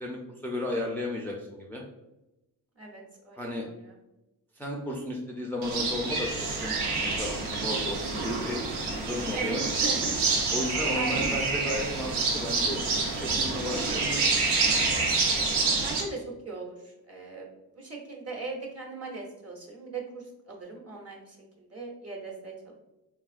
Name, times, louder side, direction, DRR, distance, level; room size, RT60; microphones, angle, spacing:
voice 1, 0.0-1.8 3.3-3.7 4.6-9.6 10.5-12.8 13.1-14.4, left 1 dB, 5° left, -2 dB, 0.4 m, -34 dB
voice 2, 2.8-3.9 9.3-10.2 10.9-11.4 15.8-17.5 17.8-22.8, right 3 dB, 40° right, -1 dB, 0.9 m, -39 dB
sound 1, 5.6-16.0, right 3 dB, 85° right, 0.7 m, -27 dB
3.4 x 2.3 x 2.4 m, 0.96 s
cardioid pair, 70°, 39 cm